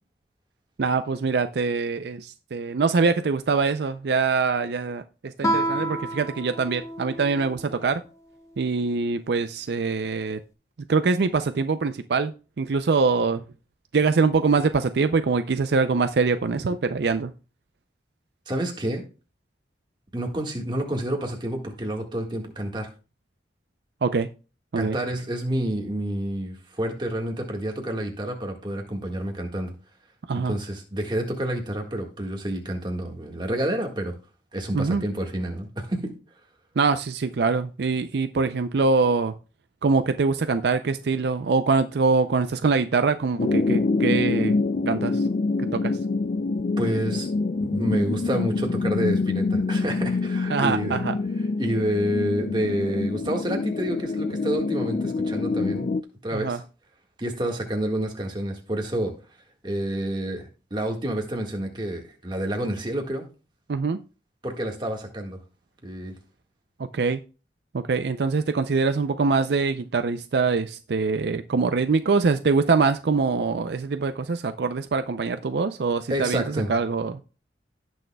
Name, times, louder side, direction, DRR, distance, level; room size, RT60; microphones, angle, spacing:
voice 1, 0.8-8.0 8.6-10.4 10.9-13.4 13.9-17.3 24.0-24.3 24.7-25.0 30.3-30.6 34.7-35.0 36.8-39.3 39.8-44.6 44.9-45.3 45.6-46.0 50.5-51.1 56.3-56.6 63.7-64.0 66.9-67.2 67.7-77.2, right 4 dB, 65° right, 9 dB, 0.4 m, -24 dB
Guitar, 5.4-7.9, right 1 dB, 15° left, 0.8 m, -29 dB
voice 2, 18.5-19.0 20.1-22.9 24.7-29.7 30.4-34.1 34.5-36.1 46.8-47.3 47.6-51.0 51.6-55.9 56.2-56.6 57.2-59.1 59.6-63.2 64.4-65.4 65.8-66.1 76.1-76.7, right 1 dB, 25° right, 2 dB, 1.6 m, -28 dB
sound 1, 43.4-56.0, left 3 dB, 45° left, 0.3 m, -26 dB
17.0 x 6.3 x 2.3 m, 0.34 s
head